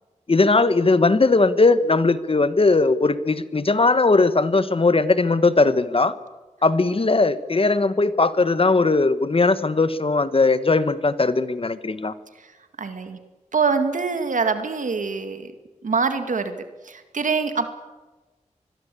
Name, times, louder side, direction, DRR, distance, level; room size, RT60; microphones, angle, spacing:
voice 1, 0.3-6.1 6.6-12.1, left 3 dB, 45° left, 13 dB, 1.4 m, -19 dB
voice 2, 12.8-13.2 13.5-15.5 15.8-16.6 16.8-17.7, right 5 dB, 85° right, 8 dB, 2.1 m, -24 dB
25.5 x 21.5 x 8.5 m, 1.2 s
wide cardioid pair, 70°, 13 cm